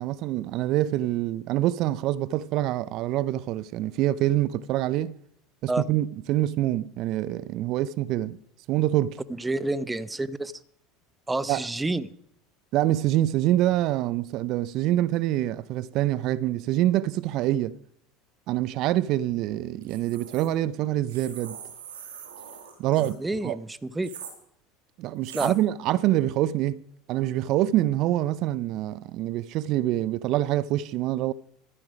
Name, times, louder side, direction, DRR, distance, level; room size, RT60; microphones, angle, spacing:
voice 1, 0.0-5.1 5.6-8.4 8.7-9.2 11.5-11.6 12.7-17.8 18.5-21.6 22.8-23.6 25.0-26.8 27.1-31.3, right 14 dB, 60° right, 0.5 m, -25 dB
voice 2, 9.4-10.5 11.3-12.1 23.2-24.1 25.3-25.5, right 2 dB, 15° right, 0.7 m, -29 dB
sound 1, 19.8-20.5 21.1-23.1 24.0-24.3 25.2-25.5, right 8 dB, 85° right, 2.3 m, -42 dB
13.0 x 9.8 x 5.1 m
hypercardioid pair, 85°, 0 cm